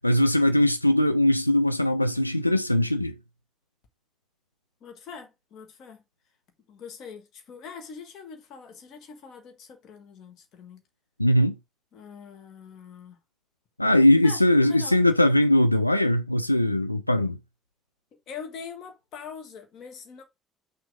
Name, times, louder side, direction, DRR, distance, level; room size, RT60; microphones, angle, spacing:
voice 1, 0.0-3.1 11.2-11.5 13.8-17.4, left 1 dB, 90° left, 0.3 m, -20 dB
voice 2, 4.8-6.0 6.7-10.8 11.9-13.2 14.2-15.0 18.3-20.2, left 6 dB, 50° left, 1.8 m, -43 dB
6.2 x 3.5 x 4.8 m
figure-of-eight pair, 55°, 0 cm